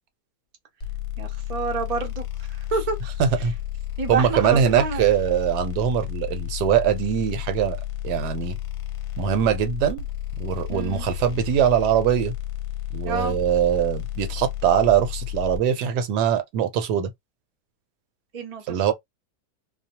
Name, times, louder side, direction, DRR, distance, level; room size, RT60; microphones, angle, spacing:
sound 1, 0.8-15.6, left 12 dB, 65° left, 1.0 m, -32 dB
voice 1, 1.2-2.2 2.7-3.0 4.0-5.0 10.7-11.1 13.0-13.4 18.3-18.9, right 4 dB, 60° right, 0.4 m, -28 dB
voice 2, 3.2-3.5 4.1-7.8 8.0-8.6 9.2-10.0 10.4-12.3 12.9-17.1 18.7-18.9, right 9 dB, 80° right, 1.2 m, -22 dB
2.7 x 2.0 x 2.7 m
omnidirectional pair, 1.8 m